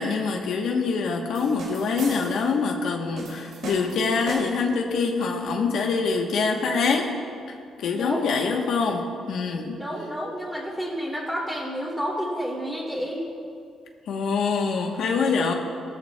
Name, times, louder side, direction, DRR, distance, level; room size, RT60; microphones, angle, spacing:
voice 1, 0.0-7.1 7.8-9.8 14.1-15.5, left 4 dB, 75° left, 1 dB, 1.0 m, -25 dB
sound 1, 1.3-2.5 3.2-4.7, right 2 dB, 80° right, 2.5 m, -37 dB
voice 2, 7.9-8.3 9.8-13.2, equal, ahead, -4 dB, 2.5 m, -30 dB
17.0 x 12.5 x 2.3 m, 2.3 s
cardioid pair, 120°, 0 cm